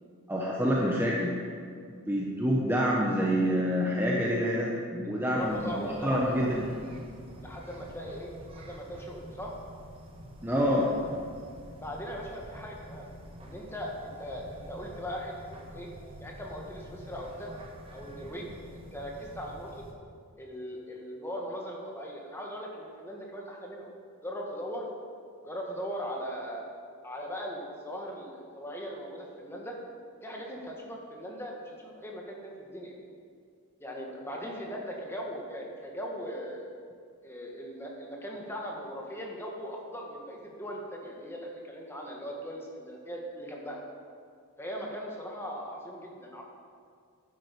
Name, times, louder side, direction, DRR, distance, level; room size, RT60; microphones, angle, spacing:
voice 1, 0.3-1.3 1.9-6.6 10.4-10.9, equal, 10° right, -4 dB, 1.0 m, -27 dB
voice 2, 5.2-6.5 7.4-9.5 11.8-13.1 13.4-15.9 16.2-17.5 17.9-18.5 18.7-19.8 20.4-23.9 24.2-24.9 25.4-26.7 27.0-29.8 30.2-32.9 33.8-36.7 37.2-43.8 44.6-46.4, equal, 10° left, -1 dB, 1.5 m, -39 dB
sound 1, 5.4-19.9, equal, 25° right, 1.3 m, -47 dB
11.0 x 8.9 x 5.2 m, 2.3 s
head